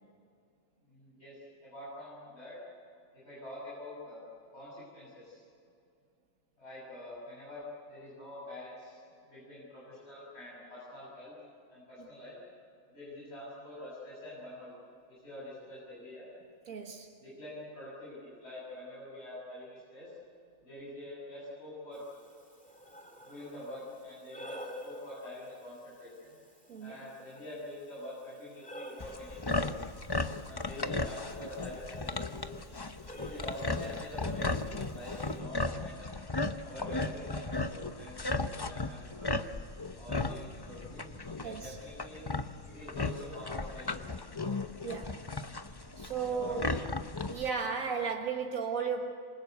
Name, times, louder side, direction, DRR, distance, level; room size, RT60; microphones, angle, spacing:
voice 1, 0.9-1.4 1.6-2.6 3.1-4.2 4.5-5.4 6.6-7.6 7.9-9.0 9.3-11.4 11.7-12.4 12.9-14.7 15.1-16.3 17.2-20.1 20.6-22.0 23.2-26.4 26.8-29.9 30.4-32.5 33.2-36.1 36.6-39.4 40.0-41.1 41.4-42.3 42.6-44.3 46.2-46.7, left 1 dB, 50° left, -8 dB, 7.9 m, -46 dB
voice 2, 16.7-17.1 26.7-27.0 41.4-41.8 44.8-45.3 46.0-46.8 47.3-49.1, right 6 dB, 80° right, 2 dB, 2.1 m, -35 dB
Breathing, 21.9-35.4, equal, 5° left, 2.2 m, -51 dB
sound 1, 29.0-47.5, left 3 dB, 20° left, 0.7 m, -36 dB
27.0 x 25.0 x 8.1 m, 2.5 s
omnidirectional pair, 1.4 m